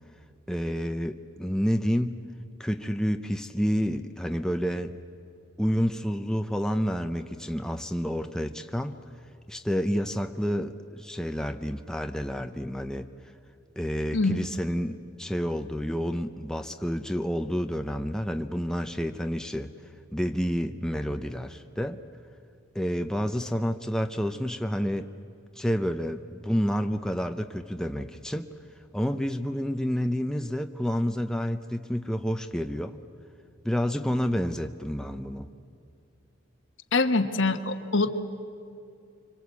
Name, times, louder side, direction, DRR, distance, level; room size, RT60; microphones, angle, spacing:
voice 1, 0.5-2.2 2.6-4.9 5.6-9.0 9.5-13.1 13.8-19.7 20.1-22.0 22.7-25.1 25.6-28.5 28.9-33.0 33.6-35.5, equal, 5° left, 6 dB, 0.6 m, -29 dB
voice 2, 36.9-38.1, left 3 dB, 65° left, 8 dB, 1.2 m, -24 dB
25.5 x 25.0 x 8.2 m, 2.5 s
head